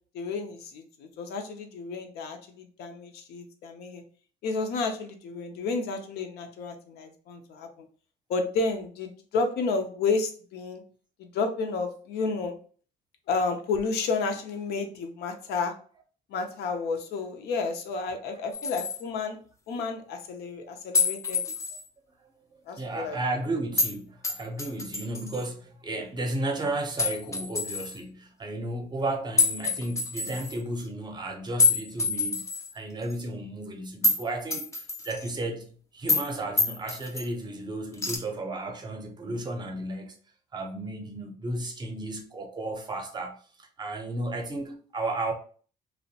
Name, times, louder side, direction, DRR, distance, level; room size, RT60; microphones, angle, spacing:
voice 1, 0.1-4.0 4.4-7.9 8.3-10.8 11.2-12.6 13.3-15.7 16.3-19.4 19.7-21.4 22.7-23.2, left 4 dB, 75° left, 0.5 m, -31 dB
sound 1, 18.5-19.0 20.9-21.8 23.8-23.9 24.2-25.5 27.0-28.0 29.4-30.6 31.6-32.7 33.1-33.2 34.0-34.2 34.5-35.4 36.1-36.3 36.6-37.3 38.0-38.2, left 3 dB, 15° left, 0.4 m, -27 dB
voice 2, 22.8-32.5 32.7-40.2 40.5-45.3, right 2 dB, 25° right, 0.6 m, -33 dB
2.6 x 2.1 x 2.7 m
cardioid pair, 110°, 17 cm